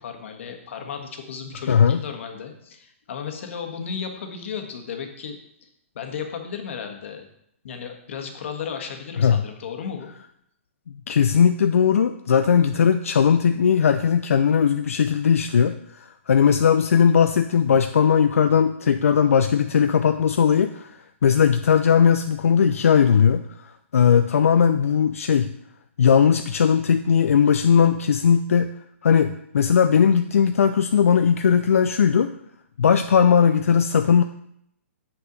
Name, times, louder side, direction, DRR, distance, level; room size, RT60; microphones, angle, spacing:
voice 1, 0.0-5.3 5.6-5.7 5.9-7.3 7.6-10.1, left 6 dB, 60° left, 4 dB, 1.5 m, -34 dB
voice 2, 1.7-2.0 9.2-9.4 11.1-25.5 26.0-28.7 29.0-32.3 32.8-34.2, left 7 dB, 80° left, 8 dB, 0.4 m, -18 dB
7.7 x 5.8 x 4.0 m, 0.74 s
hypercardioid pair, 130°, 7 cm